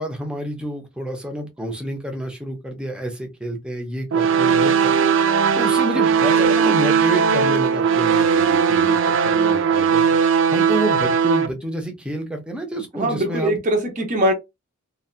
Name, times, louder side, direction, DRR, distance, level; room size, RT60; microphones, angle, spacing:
voice 1, 0.0-4.9 5.5-10.0 10.5-13.6, right 1 dB, 5° right, 0.5 m, -29 dB
sound 1, 4.1-11.5, right 6 dB, 55° right, 0.3 m, -18 dB
voice 2, 13.0-14.3, right 1 dB, 35° right, 0.8 m, -21 dB
2.7 x 2.3 x 2.4 m
head